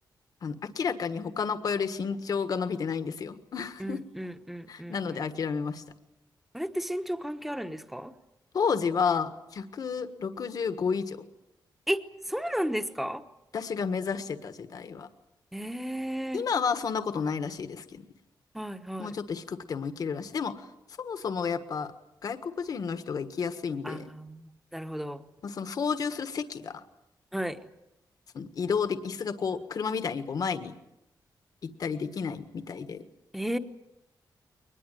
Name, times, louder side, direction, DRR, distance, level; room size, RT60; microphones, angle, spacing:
voice 1, 0.4-4.0 4.7-5.8 8.5-11.2 13.5-15.1 16.3-18.0 19.0-20.7 21.0-21.9 22.2-24.1 25.4-26.8 28.3-30.8 31.6-33.0, left 6 dB, 55° left, 9 dB, 1.5 m, -31 dB
voice 2, 3.8-5.3 6.5-8.1 11.9-12.0 12.3-13.2 15.5-16.4 18.5-19.2 23.8-25.2 27.3-27.6 33.3-33.6, equal, ahead, 8 dB, 1.1 m, -33 dB
22.5 x 20.5 x 9.1 m, 0.87 s
wide cardioid pair, 175°, 8 cm